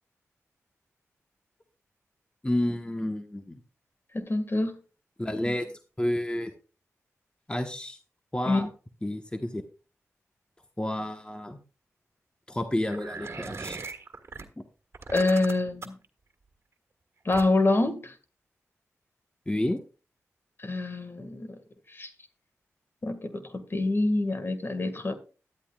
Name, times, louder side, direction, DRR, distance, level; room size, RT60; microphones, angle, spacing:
voice 1, 2.4-3.6 5.2-6.5 7.5-8.0 8.3-8.7 9.0-9.6 10.8-11.6 12.5-13.8 19.5-19.8, left 1 dB, 20° left, 1.2 m, -30 dB
voice 2, 4.1-4.8 8.5-8.7 15.1-16.0 17.3-18.1 20.6-21.5 21.9-22.1 23.0-25.1, left 2 dB, 45° left, 1.9 m, -26 dB
sound 1, 12.9-14.4 14.9-16.1 17.3-17.8, right 4 dB, 55° right, 1.6 m, -39 dB
13.0 x 11.5 x 2.4 m
cardioid pair, 50°, 5 cm